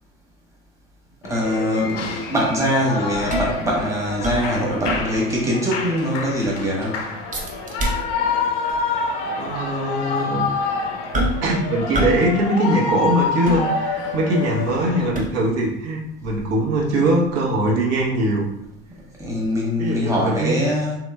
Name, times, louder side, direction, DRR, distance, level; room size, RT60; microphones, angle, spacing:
Shout / Cheering, 1.2-15.1, left 4 dB, 50° left, 0.6 m, -27 dB
voice 1, 1.2-2.0 2.3-7.0 19.2-20.9, equal, 10° right, -4 dB, 1.2 m, -22 dB
sound 1, 3.1-5.4 5.8-5.9 6.2-6.7 7.3-8.4 8.7-8.9 9.6-9.7 11.1-11.6 11.9-12.3 12.6-14.2 14.6-15.6 16.2-19.0 19.4-19.5, right 1 dB, 25° right, 0.8 m, -28 dB
voice 2, 9.4-10.5 11.4-18.5 19.8-20.5, right 1 dB, 55° right, -4 dB, 1.1 m, -21 dB
3.0 x 3.0 x 2.3 m, 0.81 s
hypercardioid pair, 90°, 31 cm